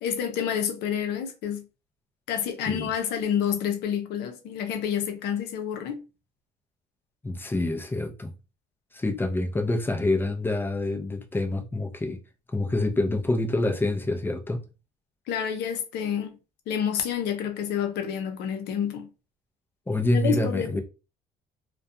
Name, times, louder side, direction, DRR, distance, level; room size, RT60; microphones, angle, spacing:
voice 1, 0.0-1.7 2.3-6.0 15.3-16.4 16.7-19.1 20.0-20.8, left 8 dB, 80° left, 0.6 m, -28 dB
voice 2, 7.2-8.3 8.9-12.2 12.5-14.6 19.9-20.8, left 2 dB, 10° left, 0.5 m, -27 dB
2.4 x 2.2 x 2.6 m
cardioid pair, 110°, 17 cm